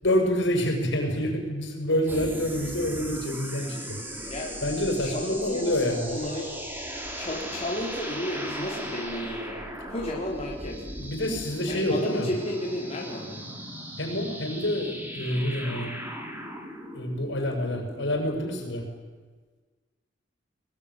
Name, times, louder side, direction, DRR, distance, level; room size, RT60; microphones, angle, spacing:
voice 1, 0.0-4.3 4.6-6.1 11.0-12.3 14.0-15.9 16.9-18.8, left 1 dB, 65° left, 3 dB, 6.8 m, -27 dB
sound 1, 2.1-18.9, equal, 10° right, 4.7 m, -38 dB
voice 2, 5.0-6.5 7.2-9.5 9.9-10.8 11.7-13.4, left 1 dB, 35° left, -2 dB, 3.7 m, -32 dB
22.0 x 22.0 x 10.0 m, 1.4 s
head